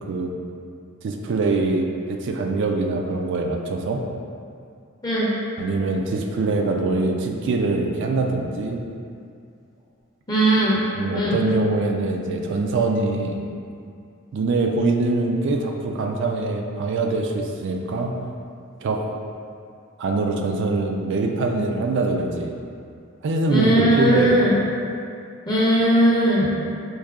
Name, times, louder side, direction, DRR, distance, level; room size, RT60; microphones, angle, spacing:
voice 1, 1.0-4.0 5.6-8.8 10.9-13.4 14.3-18.2 18.8-19.1 20.0-22.6 23.2-24.3, right 3 dB, 60° right, 2 dB, 0.3 m, -23 dB
voice 2, 10.3-10.8 11.1-11.4 23.5-24.6 25.5-26.5, equal, 20° left, -8 dB, 0.6 m, -18 dB
4.7 x 2.6 x 2.4 m, 2.3 s
head